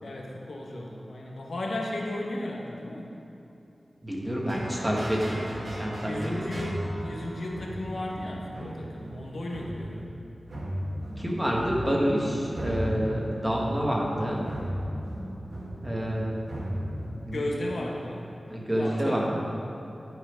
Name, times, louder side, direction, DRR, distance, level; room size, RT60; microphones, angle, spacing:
voice 1, 0.0-3.1 6.0-10.0 17.3-18.3 18.8-19.2, left 1 dB, 75° left, -1 dB, 1.1 m, -34 dB
voice 2, 4.0-6.5 11.2-14.5 15.8-16.4 17.2-17.5 18.5-19.3, equal, 10° right, -3 dB, 1.4 m, -28 dB
sound 1, 4.5-17.6, equal, 55° right, 1.6 m, -36 dB
11.0 x 5.8 x 5.0 m, 2.9 s
wide cardioid pair, 105°, 0 cm